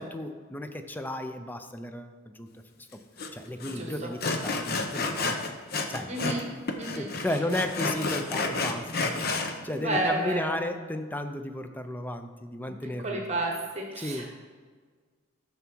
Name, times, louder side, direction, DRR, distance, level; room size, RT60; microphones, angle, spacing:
voice 1, 0.0-2.5 3.3-5.4 5.9-6.3 7.0-13.2 14.0-14.3, left 1 dB, 10° left, 7 dB, 0.5 m, -34 dB
Sawing, 3.2-3.3 3.6-3.8 4.2-6.4 6.7-9.5, left 3 dB, 50° left, 0.8 m, -30 dB
voice 2, 3.6-4.1 6.1-6.4 6.8-7.1 9.7-10.5 13.0-14.3, right 2 dB, 35° right, 1 dB, 1.2 m, -31 dB
10.5 x 7.0 x 4.5 m, 1.5 s
head